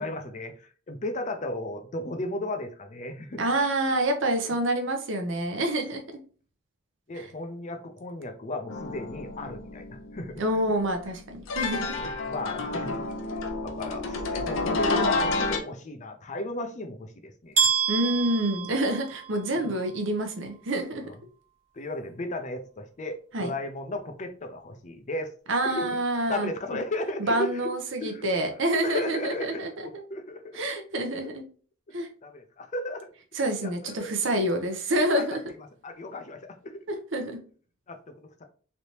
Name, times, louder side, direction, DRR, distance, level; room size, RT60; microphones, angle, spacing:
voice 1, 0.0-3.4 4.4-4.5 7.1-10.4 12.0-17.6 19.6-19.7 21.0-21.2 21.7-25.3 25.6-25.9 26.3-27.7 28.0-28.4 28.8-30.6 32.2-33.1 33.6-33.9 35.1-36.8 37.9-38.4, left 1 dB, 35° left, 7 dB, 0.5 m, -35 dB
voice 2, 3.4-6.2 7.2-7.3 10.4-12.0 17.9-21.1 23.3-23.5 25.5-26.8 27.2-29.7 30.5-31.4 31.9-32.1 33.4-35.4 37.1-37.4, right 1 dB, 70° right, 5 dB, 0.7 m, -27 dB
sound 1, 8.7-11.1 11.5-15.6, left 3 dB, 80° left, 0.6 m, -30 dB
sound 2, 17.6-19.5, right 6 dB, 35° right, 1.5 m, -27 dB
3.3 x 2.8 x 2.8 m, 0.41 s
head